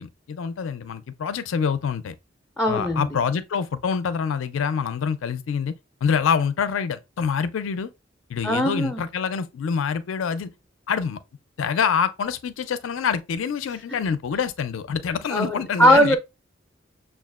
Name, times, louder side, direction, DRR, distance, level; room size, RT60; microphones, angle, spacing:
voice 1, 0.0-2.1 2.7-5.7 6.0-7.9 8.3-10.5 10.9-11.2 11.6-16.2, left 6 dB, 85° left, 0.4 m, -26 dB
voice 2, 2.6-3.0 8.4-9.1 15.3-16.2, equal, 5° left, 0.4 m, -19 dB
6.4 x 2.3 x 2.3 m
head